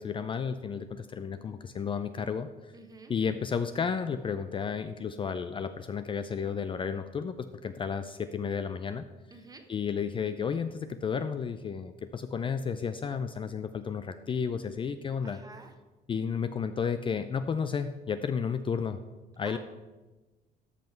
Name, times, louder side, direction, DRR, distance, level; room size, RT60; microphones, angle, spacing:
voice 1, 0.0-2.5 3.1-9.0 9.7-15.4 16.1-19.0 19.4-19.6, left 6 dB, 30° left, 10 dB, 0.4 m, -32 dB
voice 2, 2.7-3.1 9.3-9.6 15.2-15.7 19.4-19.6, right 3 dB, 20° right, 6 dB, 1.2 m, -49 dB
13.5 x 5.5 x 4.5 m, 1.2 s
cardioid pair, 110°, 17 cm